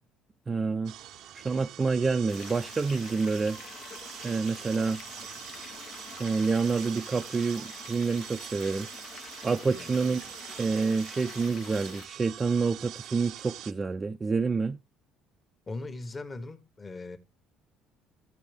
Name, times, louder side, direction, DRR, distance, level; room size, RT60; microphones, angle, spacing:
voice 1, 0.5-0.9 1.3-3.6 4.2-5.0 6.2-8.9 9.4-10.2 10.6-14.8, right 4 dB, 25° right, 0.5 m, -28 dB
sound 1, 0.8-13.7, right 11 dB, 70° right, 0.7 m, -44 dB
sound 2, 2.3-12.1, left 7 dB, 55° left, 0.8 m, -47 dB
voice 2, 15.7-17.2, left 2 dB, 25° left, 1.3 m, -39 dB
13.0 x 7.4 x 3.5 m
supercardioid pair, 95°, 0 cm